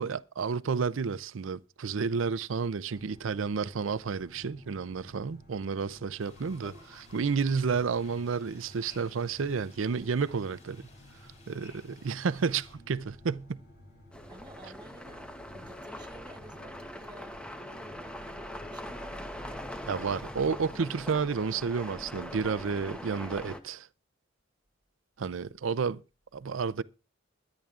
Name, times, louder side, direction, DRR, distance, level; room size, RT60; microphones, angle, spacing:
voice 1, 0.0-6.7 7.1-10.9 11.5-13.6 19.9-23.9 25.2-26.0 26.3-26.8, right 5 dB, 75° right, 0.5 m, -31 dB
sound 1, 2.9-20.9, left 1 dB, 55° left, 7.9 m, -54 dB
sound 2, 6.2-12.8, left 3 dB, 35° left, 6.2 m, -58 dB
sound 3, 14.1-23.6, left 1 dB, 5° left, 1.0 m, -42 dB
voice 2, 14.3-19.9, right 2 dB, 20° right, 1.4 m, -53 dB
22.5 x 10.5 x 2.4 m
head